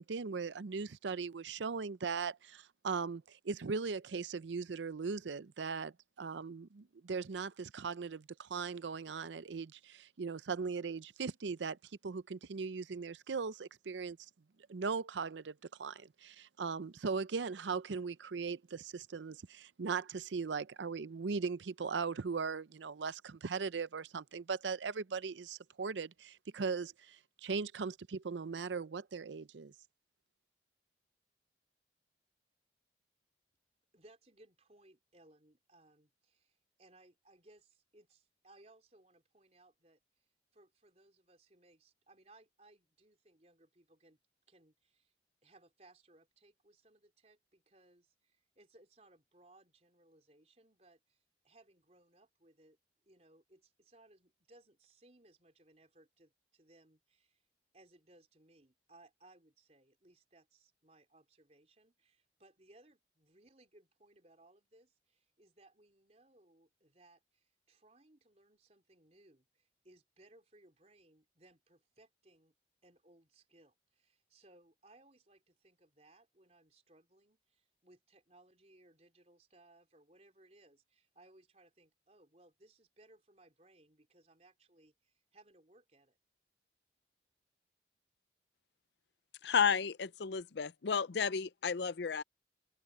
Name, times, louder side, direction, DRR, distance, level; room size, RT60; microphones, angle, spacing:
voice 1, 0.0-11.8 12.0-14.2 14.7-29.7, right 5 dB, 85° right, 0.6 m, -39 dB
voice 2, 33.9-44.2 44.5-45.1 45.4-52.8 53.1-57.5 57.7-72.5 72.8-86.2, right 2 dB, 35° right, 3.9 m, -65 dB
voice 3, 89.4-92.2, left 6 dB, 75° left, 0.5 m, -32 dB
open air
head